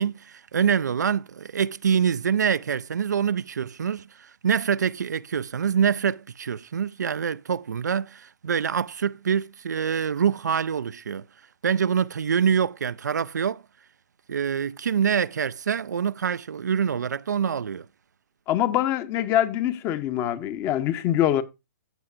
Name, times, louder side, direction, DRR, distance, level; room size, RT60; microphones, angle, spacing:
voice 1, 0.0-11.2 11.6-13.6 14.3-17.9, right 7 dB, 70° right, 0.4 m, -25 dB
voice 2, 18.5-21.4, left 12 dB, 25° left, 0.8 m, -24 dB
15.0 x 6.4 x 2.4 m
figure-of-eight pair, 120°, 10 cm